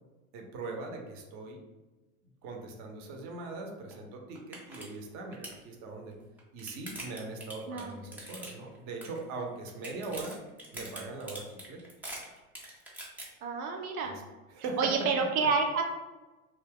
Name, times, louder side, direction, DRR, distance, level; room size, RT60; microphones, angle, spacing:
voice 1, 0.3-1.6 2.4-6.1 6.5-10.4 10.7-11.8 14.0-14.2 14.5-15.1, right 3 dB, 40° right, 2 dB, 0.7 m, -40 dB
sound 1, 3.9-4.0 4.3-4.9 5.1-5.6 6.2-8.8 9.0-9.4 9.7-13.2, right 1 dB, 5° right, 0.3 m, -43 dB
voice 2, 7.7-8.0 13.4-14.1 14.8-15.8, right 5 dB, 75° right, 3 dB, 0.6 m, -29 dB
2.7 x 2.3 x 3.5 m, 1.1 s
figure-of-eight pair, 85°, 43 cm